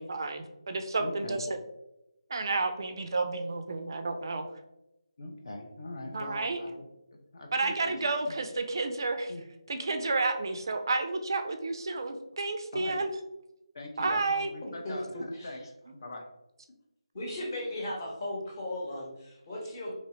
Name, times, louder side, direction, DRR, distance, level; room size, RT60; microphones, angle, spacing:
voice 1, 0.0-1.6 2.3-4.4 6.1-6.6 7.5-9.3 9.7-13.1 14.0-14.5, right 3 dB, 45° right, 6 dB, 0.3 m, -31 dB
voice 2, 1.0-1.4 5.2-6.9 7.3-7.9 8.3-8.4 9.3-9.4 12.7-13.0 13.7-16.2 17.5-17.6, left 2 dB, 50° left, 2 dB, 0.5 m, -42 dB
voice 3, 17.1-19.9, left 1 dB, 30° left, -2 dB, 0.9 m, -36 dB
2.9 x 2.8 x 2.7 m, 0.89 s
figure-of-eight pair, 155°, 3 cm